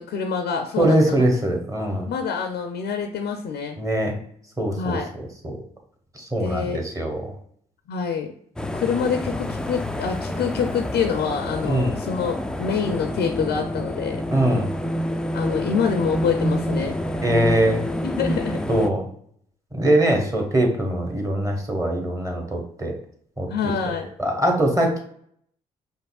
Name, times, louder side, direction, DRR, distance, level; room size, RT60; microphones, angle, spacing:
voice 1, 0.0-1.2 2.1-3.8 4.8-5.1 6.4-6.8 7.9-8.3 8.7-14.2 15.3-17.0 18.0-18.6 23.5-24.1, left 6 dB, 60° left, 5 dB, 0.5 m, -26 dB
voice 2, 0.8-2.1 3.8-4.2 4.6-5.0 5.4-5.5 6.2-7.3 11.6-11.9 14.3-14.7 17.2-17.8 18.7-19.0 19.7-22.9 23.4-23.5 24.2-25.0, right 1 dB, 15° right, 2 dB, 1.2 m, -22 dB
sound 1, 8.6-18.9, equal, 5° left, 0.3 m, -28 dB
5.2 x 2.1 x 2.3 m, 0.66 s
hypercardioid pair, 45°, 19 cm